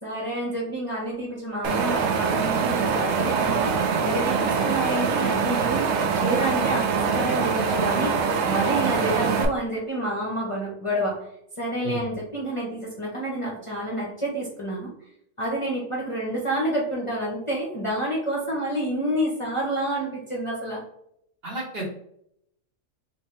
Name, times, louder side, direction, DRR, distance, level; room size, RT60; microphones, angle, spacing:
voice 1, 0.0-5.8 6.1-11.3 11.6-14.9 15.4-20.8, right 1 dB, 30° left, -4 dB, 0.7 m, -29 dB
Wind, 1.6-9.5, right 5 dB, 65° right, 0.8 m, -24 dB
voice 2, 21.4-21.8, right 3 dB, 50° right, -3 dB, 1.2 m, -32 dB
3.2 x 3.1 x 3.1 m, 0.74 s
omnidirectional pair, 1.4 m